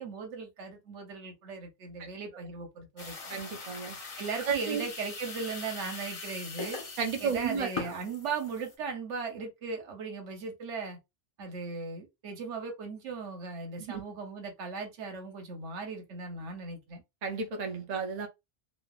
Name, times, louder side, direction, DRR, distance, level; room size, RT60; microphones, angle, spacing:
voice 1, 0.0-3.2 4.2-6.8 7.2-11.0 11.4-17.0, right 4 dB, 85° right, 1.2 m, -38 dB
sound 1, 3.0-8.7, left 4 dB, 35° left, 0.6 m, -41 dB
voice 2, 3.3-4.0 4.4-4.9 7.0-7.7 13.8-14.0 17.2-18.3, right 6 dB, 45° right, 0.6 m, -32 dB
3.1 x 2.1 x 2.3 m
omnidirectional pair, 1.2 m